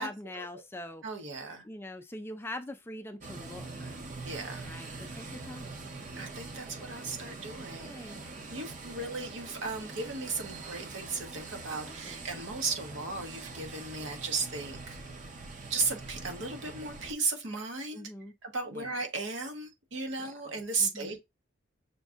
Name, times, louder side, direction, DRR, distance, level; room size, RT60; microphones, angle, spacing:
voice 1, 0.0-1.0 1.6-4.0 4.6-5.8 6.5-6.7 7.7-8.2 11.8-12.2 17.9-18.3 18.7-18.9 20.8-21.2, left 1 dB, 10° left, 0.4 m, -43 dB
voice 2, 1.0-1.7 4.2-4.7 5.1-5.2 6.2-8.0 8.5-15.0 15.7-18.0 18.4-21.2, right 4 dB, 70° right, 1.0 m, -35 dB
sound 1, 3.2-17.1, right 3 dB, 40° right, 0.6 m, -44 dB
6.2 x 2.6 x 2.4 m
head